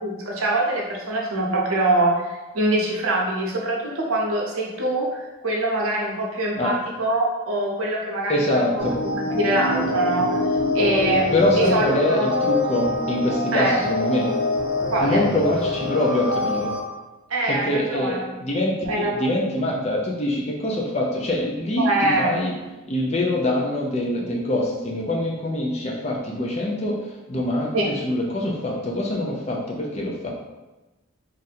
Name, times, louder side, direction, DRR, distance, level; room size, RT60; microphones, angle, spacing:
voice 1, 0.0-8.7 9.0-10.4 10.7-12.3 13.5-13.8 14.9-15.2 17.3-18.3 18.9-19.3 21.8-22.4 27.7-27.9, right 1 dB, 80° right, -2 dB, 0.7 m, -24 dB
voice 2, 8.3-8.9 11.3-14.3 15.0-16.7 17.5-22.5 22.9-27.0 27.3-30.3, left 1 dB, 30° left, -2 dB, 0.5 m, -24 dB
sound 1, 8.8-16.8, left 2 dB, 75° left, 0.7 m, -25 dB
2.7 x 2.5 x 4.1 m, 1.1 s
head